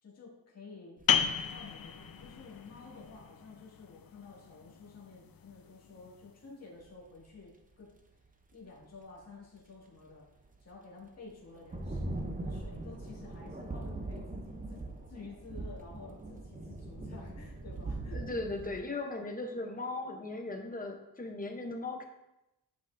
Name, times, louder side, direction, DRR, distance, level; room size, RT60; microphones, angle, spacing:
voice 1, 0.0-7.9 8.5-10.3 10.6-18.4, left 4 dB, 35° left, -6 dB, 2.0 m, -51 dB
sound 1, 1.0-3.2 6.8-7.2 7.7-8.0 9.2-9.3 10.1-10.2 10.4-10.7 11.3-18.8, right 2 dB, 20° right, 0.6 m, -41 dB
sound 2, 1.1-6.4, left 8 dB, 55° left, 0.5 m, -35 dB
voice 2, 18.1-22.0, left 2 dB, 20° left, 3 dB, 0.8 m, -38 dB
10.0 x 5.3 x 2.6 m, 0.92 s
wide cardioid pair, 150°, 42 cm